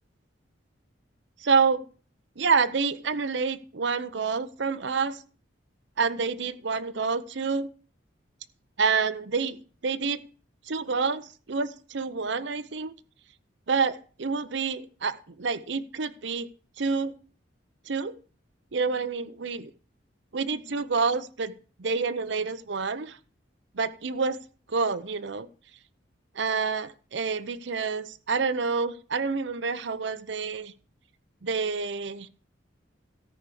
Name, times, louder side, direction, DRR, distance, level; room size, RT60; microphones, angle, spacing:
voice 1, 1.4-1.8 2.4-5.2 6.0-7.7 8.8-9.6 9.8-10.2 10.7-12.9 13.7-16.5 16.8-17.1 17.9-18.1 18.7-19.7 20.3-21.5 21.8-23.2 23.7-24.4 24.7-25.5 26.4-30.7 31.4-32.3, right 5 dB, 65° right, 13 dB, 0.7 m, -28 dB
13.5 x 4.8 x 6.8 m, 0.40 s
head